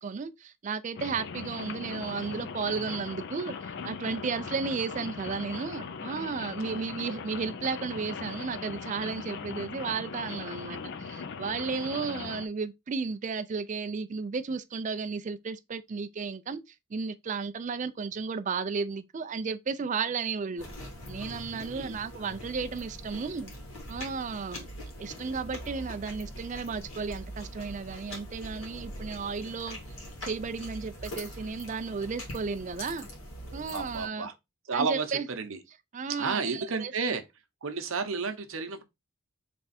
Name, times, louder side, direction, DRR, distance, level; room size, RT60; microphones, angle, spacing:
voice 1, 0.0-3.6 3.8-16.6 16.9-20.7 21.1-23.5 23.9-24.7 25.0-29.8 30.2-33.1 33.5-34.3 34.7-35.3 35.9-36.9, right 5 dB, 35° right, 0.3 m, -33 dB
Rain, 1.0-12.5, left 5 dB, 50° left, 0.4 m, -39 dB
sound 1, 20.6-34.1, equal, 75° left, 1.9 m, -43 dB
voice 2, 21.5-22.0 33.7-34.3 34.7-35.6 36.2-37.2 37.6-38.8, right 4 dB, 60° right, 0.8 m, -32 dB
3.5 x 3.3 x 4.1 m
head